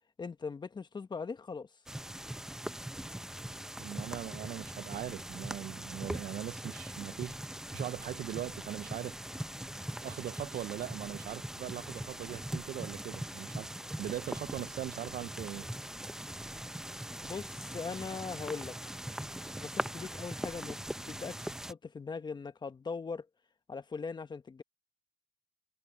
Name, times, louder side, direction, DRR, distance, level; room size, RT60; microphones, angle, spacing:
voice 1, 0.2-1.7 17.2-18.8 19.6-20.8 21.1-23.3 23.7-24.6, left 5 dB, 25° left, 1.3 m, -40 dB
sound 1, 1.9-21.7, right 1 dB, 5° right, 0.8 m, -41 dB
voice 2, 3.8-9.2 10.0-13.7 14.0-15.7, right 12 dB, 55° right, 0.5 m, -40 dB
sound 2, 11.7-18.3, left 9 dB, 55° left, 7.3 m, -67 dB
cardioid pair, 110°, 17 cm